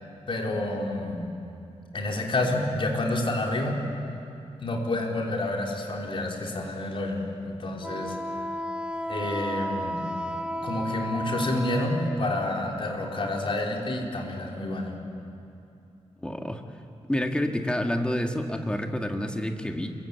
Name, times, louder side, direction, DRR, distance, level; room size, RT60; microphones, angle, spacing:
voice 1, 0.3-1.3 1.9-3.8 4.6-8.2 9.1-10.1 10.6-15.0, left 2 dB, 50° left, 0 dB, 4.4 m, -29 dB
Wind instrument woodwind instrument, 7.8-12.3, equal, 10° right, 1.1 m, -33 dB
voice 2, 16.2-16.6 17.1-19.9, left 1 dB, 10° left, 3 dB, 2.0 m, -28 dB
27.0 x 23.5 x 8.6 m, 2.7 s
wide cardioid pair, 125°, 11 cm